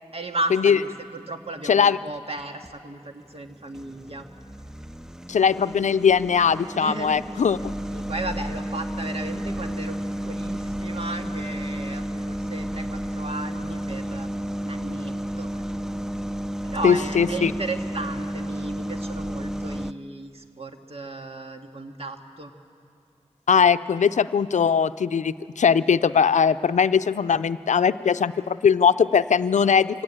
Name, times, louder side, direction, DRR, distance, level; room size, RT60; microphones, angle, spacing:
voice 1, 0.1-0.8 1.1-4.3 6.8-7.3 7.9-10.0 10.2-14.3 14.6-15.6 16.6-22.5, right 2 dB, 55° right, 4 dB, 1.9 m, -34 dB
voice 2, 1.6-2.0 5.3-7.6 16.8-17.5 23.5-30.0, left 6 dB, 85° left, 14 dB, 0.5 m, -20 dB
sound 1, 2.1-2.8 3.3-19.9, equal, 5° right, 0.5 m, -32 dB
23.5 x 16.5 x 8.8 m, 2.3 s
cardioid pair, 40°, 12 cm